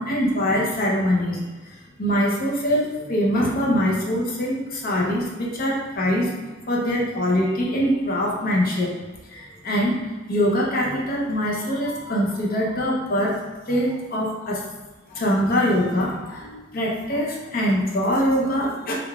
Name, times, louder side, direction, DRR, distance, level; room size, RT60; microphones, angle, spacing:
voice 1, 0.0-6.3 6.7-8.9 9.3-13.4 13.7-14.6 15.1-18.9, equal, 50° left, -3 dB, 0.6 m, -23 dB
3.7 x 3.4 x 2.3 m, 1.3 s
head